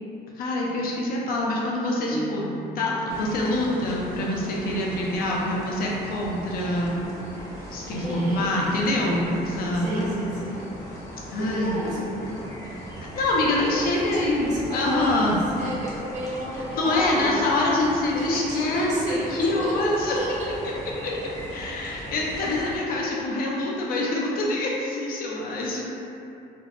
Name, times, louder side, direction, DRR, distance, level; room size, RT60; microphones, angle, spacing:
voice 1, 0.4-2.4 2.8-7.0 7.7-10.2 11.3-11.7 13.1-15.4 16.7-20.2 21.0-21.1 21.5-25.8, left 2 dB, 60° left, -3 dB, 0.5 m, -25 dB
sound 1, 2.1-3.1, right 2 dB, 15° right, 0.4 m, -35 dB
sound 2, 3.1-22.8, equal, 20° left, 0.7 m, -39 dB
voice 2, 7.9-8.5 9.7-10.6 11.4-12.7 13.7-17.4 18.1-20.6, right 1 dB, 45° right, -6 dB, 0.7 m, -31 dB
2.5 x 2.0 x 2.5 m, 2.7 s
cardioid pair, 110°, 17 cm